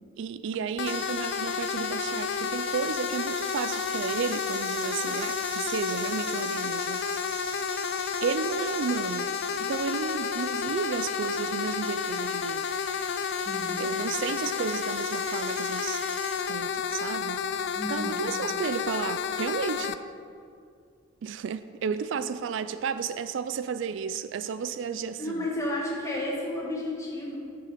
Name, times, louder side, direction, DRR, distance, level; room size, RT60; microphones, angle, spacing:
voice 1, 0.2-7.0 8.2-9.3 9.6-12.7 13.8-16.0 16.5-17.4 17.9-20.0 21.2-25.5, right 6 dB, 65° right, 13 dB, 0.3 m, -32 dB
sound 1, 0.8-20.0, left 7 dB, 60° left, 0.4 m, -31 dB
sound 2, 0.9-16.8, right 5 dB, 30° right, 0.8 m, -42 dB
voice 2, 13.3-13.8 17.7-18.2 25.2-27.4, left 1 dB, 15° left, -3 dB, 1.8 m, -32 dB
10.0 x 6.9 x 5.0 m, 2.4 s
head